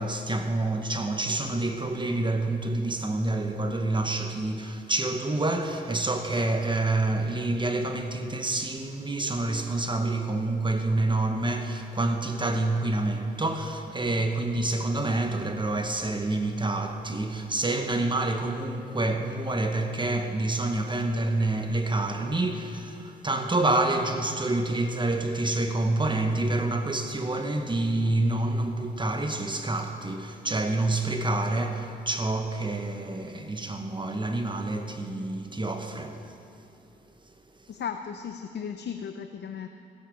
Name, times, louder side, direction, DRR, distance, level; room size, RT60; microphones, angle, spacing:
voice 1, 0.0-36.3, right 2 dB, 25° right, 1.1 m, -27 dB
voice 2, 37.7-39.7, left 7 dB, 60° left, 0.6 m, -35 dB
15.5 x 7.4 x 7.4 m
cardioid pair, 70°, 20 cm